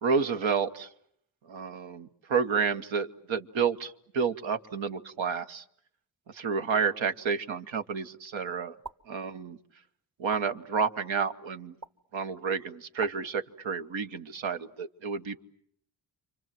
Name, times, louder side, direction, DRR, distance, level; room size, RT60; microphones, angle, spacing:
voice 1, 0.0-0.9 1.5-5.6 6.3-8.7 9.1-9.6 10.2-11.7 12.1-15.4, right 5 dB, 90° right, 7 dB, 1.3 m, -30 dB
sound 1, 8.8-9.0 10.3-10.4 11.8-11.9 13.0-13.1, right 3 dB, 40° right, 1.2 m, -41 dB
29.0 x 25.0 x 7.7 m, 0.69 s
cardioid pair, 60°, 45 cm